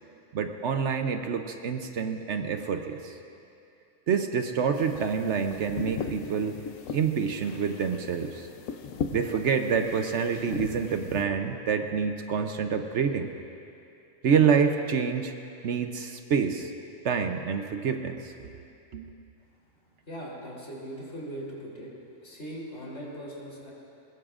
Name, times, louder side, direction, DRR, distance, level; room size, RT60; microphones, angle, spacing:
voice 1, 0.3-3.1 4.1-6.6 6.9-8.5 9.1-13.3 14.2-15.3 15.6-16.7 17.0-18.5 18.9-19.1, right 6 dB, 65° right, 6 dB, 1.0 m, -27 dB
sound 1, 4.7-11.2, left 6 dB, 80° left, 1.1 m, -38 dB
voice 2, 20.1-21.9 22.2-23.7, equal, 60° left, -5 dB, 3.6 m, -39 dB
21.0 x 20.5 x 2.5 m, 2.6 s
omnidirectional pair, 1.3 m